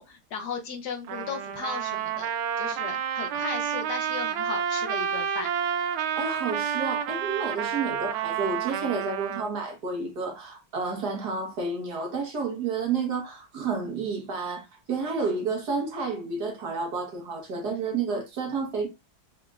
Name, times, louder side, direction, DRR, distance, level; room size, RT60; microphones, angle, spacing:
voice 1, 0.0-2.3 2.6-5.5, left 5 dB, 65° left, 1.2 m, -36 dB
Trumpet, 1.1-9.5, right 8 dB, 90° right, 1.4 m, -29 dB
voice 2, 5.9-18.9, right 4 dB, 55° right, 1.6 m, -30 dB
5.1 x 3.5 x 2.4 m
omnidirectional pair, 2.2 m